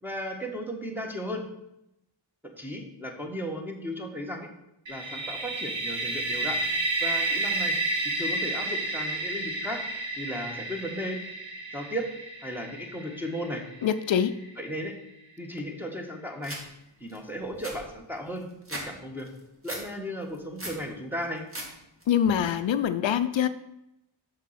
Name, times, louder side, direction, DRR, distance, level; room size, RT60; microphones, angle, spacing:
voice 1, 0.0-1.4 2.6-4.5 4.9-6.6 7.0-7.7 8.2-9.8 10.2-11.2 11.7-12.1 12.4-13.6 14.6-14.9 15.4-16.5 17.0-19.3 19.6-21.4, equal, 5° right, 2 dB, 1.6 m, -35 dB
sound 1, 4.9-14.6, right 2 dB, 70° right, 1.6 m, -31 dB
voice 2, 13.8-14.3 22.1-23.5, left 9 dB, 70° left, 11 dB, 0.6 m, -24 dB
sound 2, 16.4-16.6 17.1-17.2 17.4-18.9 19.2-19.8 20.2-20.8 21.2-21.7 22.0-22.5, right 1 dB, 30° right, 2.3 m, -38 dB
7.2 x 6.6 x 5.9 m, 0.87 s
wide cardioid pair, 105°, 47 cm